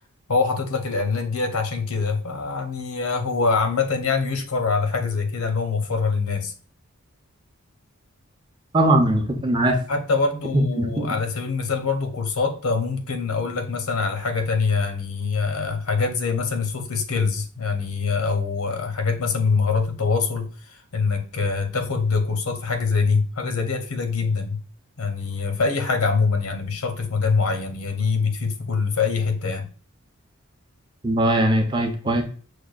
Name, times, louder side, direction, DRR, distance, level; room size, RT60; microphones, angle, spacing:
voice 1, 0.3-6.5 9.9-24.6 25.0-29.7, left 4 dB, 85° left, 0.7 m, -24 dB
voice 2, 8.7-9.8 10.5-11.1 31.0-32.2, right 1 dB, 20° right, 0.5 m, -20 dB
6.3 x 2.2 x 2.4 m
head